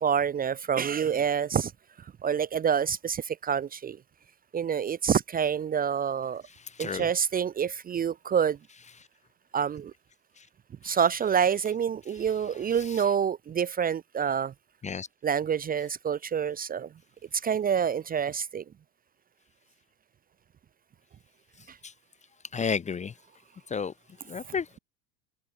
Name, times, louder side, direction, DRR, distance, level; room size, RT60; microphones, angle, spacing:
voice 1, 0.0-1.7 2.2-4.0 4.5-6.4 6.8-8.6 9.5-9.9 10.8-14.5 15.2-16.9 17.4-18.6 21.7-21.8 24.5-24.6, right 7 dB, 20° right, 0.7 m, -27 dB
voice 2, 22.5-23.1 23.7-23.9 24.3-24.8, left 6 dB, 15° left, 0.8 m, -31 dB
hypercardioid pair, 80°, 42 cm